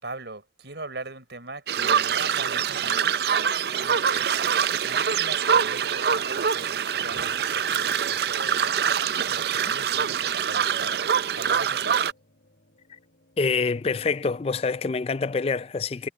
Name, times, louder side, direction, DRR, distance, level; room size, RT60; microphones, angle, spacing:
voice 1, 0.0-4.4 4.8-11.0 11.3-12.1, right 3 dB, 80° right, 4.3 m, -41 dB
Geese Bathing, 1.7-12.1, right 7 dB, 65° right, 0.4 m, -24 dB
sound 1, 3.5-14.8, left 1 dB, 65° left, 3.9 m, -63 dB
Bathtub (filling or washing) / Splash splatter, 6.2-12.2, right 3 dB, 25° right, 7.7 m, -55 dB
voice 2, 13.4-16.1, left 4 dB, 35° left, 0.4 m, -26 dB
head